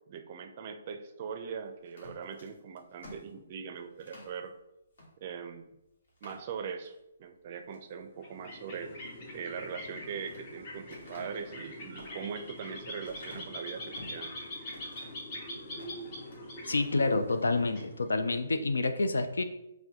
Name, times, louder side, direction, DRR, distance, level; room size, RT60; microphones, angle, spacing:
voice 1, 0.1-4.5 5.2-5.7 6.2-6.9 7.2-14.4, right 6 dB, 45° right, 7 dB, 0.4 m, -41 dB
sound 1, 1.8-4.4 4.9-5.1 5.5-5.6 6.0-7.0 7.5-7.9 9.7-10.4 10.9-14.2 14.7-15.3 15.7-16.4 16.7-17.0, left 1 dB, 65° left, 1.4 m, -52 dB
sound 2, 8.1-18.5, equal, 45° left, 1.1 m, -43 dB
voice 2, 16.7-19.4, left 3 dB, 85° left, 8 dB, 0.4 m, -28 dB
5.7 x 2.2 x 2.8 m, 0.90 s
hypercardioid pair, 140°, 0 cm